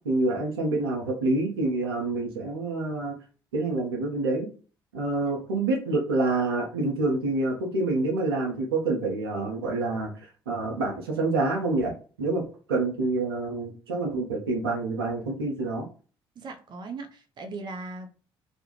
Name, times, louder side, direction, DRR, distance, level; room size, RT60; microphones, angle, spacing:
voice 1, 0.0-3.2 3.5-4.5 4.9-11.9 12.2-12.4 12.7-15.9, right 2 dB, 85° right, 0.5 m, -27 dB
voice 2, 16.4-18.1, right 3 dB, 40° right, 0.5 m, -38 dB
2.4 x 2.1 x 2.9 m
hypercardioid pair, 50°, 12 cm